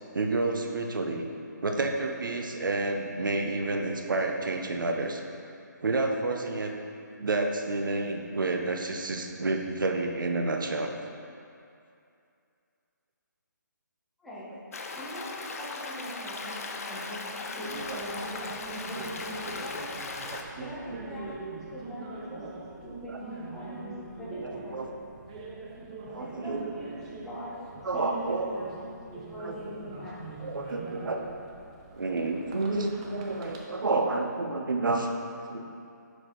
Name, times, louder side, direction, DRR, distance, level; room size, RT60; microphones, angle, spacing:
voice 1, 0.1-1.2 1.6-5.2 5.8-6.7 7.2-10.9 17.6-18.0 20.3-21.1 22.4-22.5 24.4-24.9 26.0-26.7 27.8-28.5 29.4-29.5 30.4-31.2 31.9-35.1 35.5-35.7, right 3 dB, 90° right, 3 dB, 0.7 m, -30 dB
voice 2, 14.2-14.5 14.9-18.3 18.8-19.9 20.6-22.4 22.8-23.9 24.2-24.9 26.2-27.6 27.9-30.1, equal, ahead, -12 dB, 1.0 m, -42 dB
Stream, 14.7-20.4, left 3 dB, 50° left, 0.5 m, -38 dB
sound 1, 17.7-33.6, right 3 dB, 15° right, 0.4 m, -43 dB
6.1 x 4.9 x 3.8 m, 2.5 s
hypercardioid pair, 165°, 10 cm